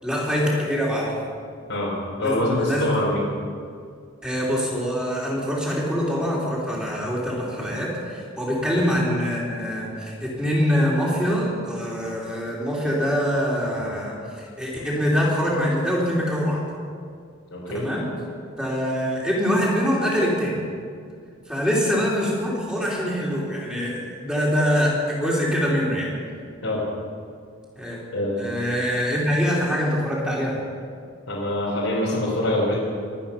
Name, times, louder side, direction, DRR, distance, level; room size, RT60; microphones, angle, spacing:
voice 1, 0.0-1.1 2.2-3.0 4.2-16.6 17.7-18.1 18.6-20.6 21.5-26.1 27.8-28.0 28.4-30.6, equal, 5° right, -5 dB, 3.5 m, -24 dB
voice 2, 2.2-3.2 8.7-8.8 17.5-17.9 26.6-26.8 28.1-28.5 31.3-32.8, left 1 dB, 75° left, -6 dB, 4.0 m, -24 dB
24.0 x 9.4 x 5.8 m, 2.2 s
head